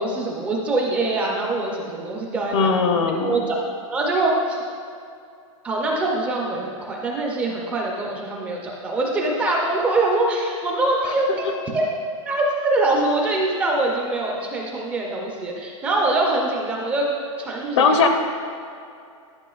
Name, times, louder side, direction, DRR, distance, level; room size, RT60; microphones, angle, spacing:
voice 1, 0.0-2.7 3.2-3.6 3.9-4.6 5.6-11.9 12.3-17.1 17.4-18.0, right 2 dB, 10° right, -1 dB, 0.3 m, -23 dB
voice 2, 2.5-3.4 17.8-18.1, left 5 dB, 55° left, 6 dB, 0.6 m, -19 dB
11.5 x 5.4 x 2.3 m, 2.4 s
supercardioid pair, 170°, 18 cm